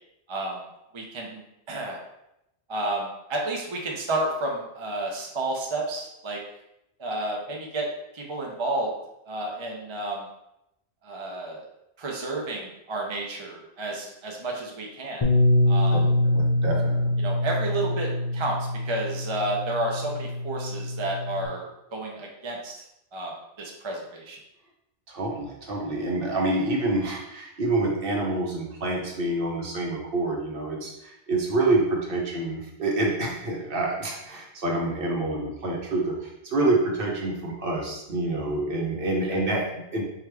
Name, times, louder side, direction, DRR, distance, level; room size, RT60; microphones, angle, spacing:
voice 1, 0.3-0.6 0.9-2.0 2.7-6.4 7.0-7.9 8.1-8.9 9.3-10.3 11.0-11.6 12.0-15.2 15.7-16.1 17.2-18.6 18.8-22.8 23.1-23.3 23.6-24.4 39.2-39.4, right 2 dB, 35° right, -1 dB, 0.5 m, -31 dB
Bass guitar, 15.2-21.5, left 1 dB, 50° left, 0.4 m, -24 dB
voice 2, 15.9-17.1 25.1-30.9 31.3-36.1 36.4-40.0, right 2 dB, 60° right, -1 dB, 1.0 m, -27 dB
4.6 x 2.4 x 3.3 m, 0.86 s
omnidirectional pair, 1.1 m